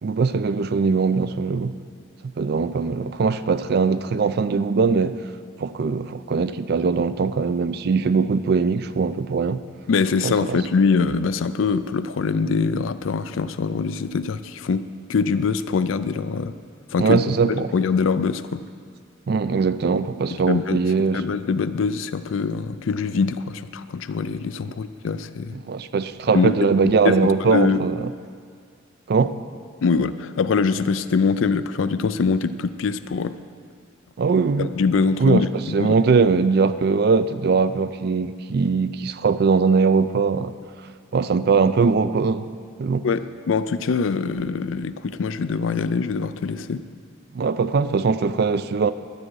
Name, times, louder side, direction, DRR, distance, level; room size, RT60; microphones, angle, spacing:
voice 1, 0.0-1.7 2.2-5.1 5.6-9.6 10.2-10.6 17.0-17.7 19.3-21.2 25.5-28.1 29.1-29.4 34.2-34.7 35.2-35.4 35.7-40.5 41.1-42.5 42.8-43.1 47.3-48.9, right 4 dB, 50° right, 13 dB, 0.4 m, -21 dB
voice 2, 9.9-14.8 15.1-16.5 16.9-17.2 17.7-18.6 20.3-25.5 26.3-26.5 27.0-27.8 29.8-33.4 34.6-35.9 43.0-46.8, left 5 dB, 85° left, 13 dB, 0.4 m, -23 dB
12.5 x 4.7 x 8.6 m, 2.1 s
head